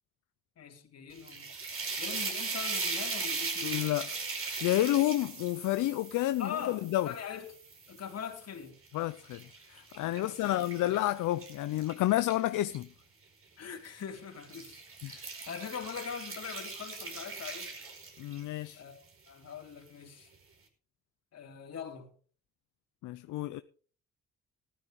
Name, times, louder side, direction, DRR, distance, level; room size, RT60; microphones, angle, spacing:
voice 1, 0.6-1.5 2.0-3.8 6.4-7.5 7.9-8.8 10.2-10.9 13.6-17.7 18.7-20.3 21.3-22.1, left 7 dB, 55° left, 4.0 m, -42 dB
sound 1, 1.1-8.3 8.9-12.8 13.7-14.0 14.4-18.6, right 4 dB, 45° right, 5.0 m, -39 dB
voice 2, 3.6-7.1 8.9-9.4 9.7-12.9 15.0-15.1 18.2-18.8 23.0-23.6, left 15 dB, 80° left, 0.7 m, -30 dB
15.0 x 13.0 x 3.7 m
cardioid pair, 90°, 30 cm